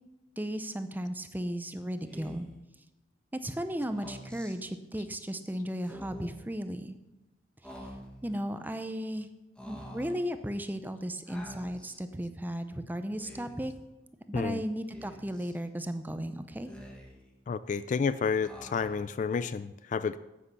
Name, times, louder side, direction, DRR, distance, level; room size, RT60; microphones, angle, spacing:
voice 1, 0.4-2.5 3.3-7.0 8.2-9.3 9.6-13.7 14.3-16.7, equal, 10° right, 9 dB, 0.6 m, -35 dB
Speech, 2.1-2.6 3.8-4.6 5.8-6.4 7.6-8.3 9.6-10.2 11.3-12.0 13.1-13.7 14.9-15.6 16.5-17.3 18.4-19.1, equal, 5° left, 1.4 m, -47 dB
voice 2, 17.5-20.2, left 5 dB, 40° left, 15 dB, 0.3 m, -30 dB
9.8 x 8.4 x 5.6 m, 0.97 s
head